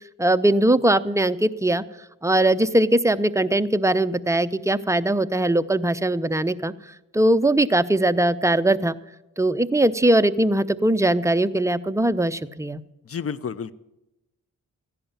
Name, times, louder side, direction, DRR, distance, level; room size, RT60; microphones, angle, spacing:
voice 1, 0.2-1.8 2.2-6.7 7.1-9.0 9.4-12.8, right 1 dB, 10° right, 12 dB, 0.7 m, -20 dB
voice 2, 13.1-13.7, left 6 dB, 45° left, 18 dB, 0.7 m, -30 dB
15.0 x 11.0 x 7.3 m, 0.94 s
cardioid pair, 80°, 31 cm